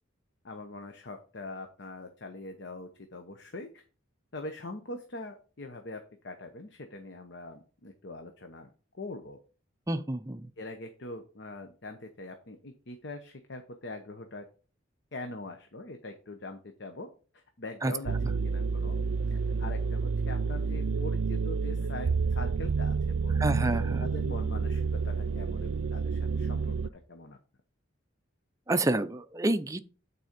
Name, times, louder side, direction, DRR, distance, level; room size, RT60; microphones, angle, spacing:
voice 1, 0.4-3.8 4.3-9.4 10.6-14.4 15.1-17.1 17.3-18.1 18.4-19.0 19.3-27.4, left 2 dB, 55° left, 0.8 m, -43 dB
voice 2, 9.9-10.5 17.8-17.9 23.4-24.1 28.7-29.8, right 2 dB, 15° right, 0.4 m, -29 dB
sound 1, 18.1-26.9, right 5 dB, 75° right, 0.4 m, -29 dB
9.1 x 4.2 x 5.1 m
head